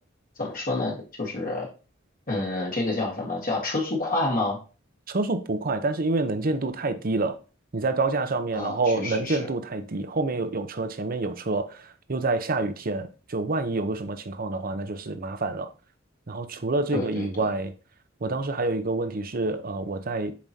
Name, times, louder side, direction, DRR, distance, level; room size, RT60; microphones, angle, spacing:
voice 1, 0.4-1.7 2.3-4.6 8.5-9.5 16.9-17.5, left 2 dB, 45° left, 1.6 m, -28 dB
voice 2, 5.1-7.4 7.7-15.7 16.3-17.7 18.2-20.3, right 3 dB, 45° right, 0.7 m, -27 dB
7.2 x 4.8 x 2.8 m
head